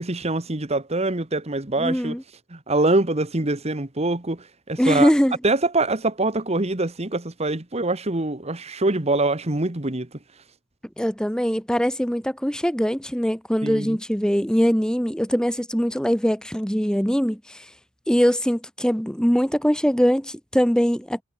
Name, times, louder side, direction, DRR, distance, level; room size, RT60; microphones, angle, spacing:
voice 1, 0.0-2.2 2.5-5.1 5.4-10.1 13.6-14.0, right 2 dB, 30° right, 1.5 m, -24 dB
voice 2, 1.8-2.2 4.8-5.3 11.0-17.6 18.1-21.2, equal, 5° left, 2.1 m, -22 dB
head